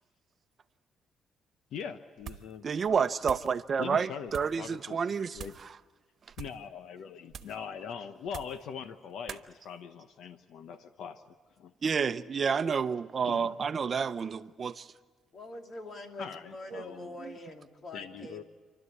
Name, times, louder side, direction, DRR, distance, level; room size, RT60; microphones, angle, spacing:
voice 1, 1.7-2.6 3.8-4.3 4.6-5.0 5.3-5.5 6.4-11.2 11.6-11.7 13.2-13.5 16.2-17.1 17.9-18.4, left 7 dB, 75° left, 0.9 m, -41 dB
sound 1, 2.2-2.6 2.9-3.6 4.3-4.6 5.3-5.7 6.3-6.7 7.3-7.6 8.3-8.7 9.3-9.5, right 8 dB, 65° right, 1.2 m, -45 dB
voice 2, 2.6-5.8 11.8-14.9 16.7-16.8 17.2-17.3, right 6 dB, 45° right, 0.7 m, -30 dB
voice 3, 15.3-18.4, left 2 dB, 55° left, 2.9 m, -44 dB
30.0 x 12.5 x 9.8 m
cardioid pair, 90°, 0 cm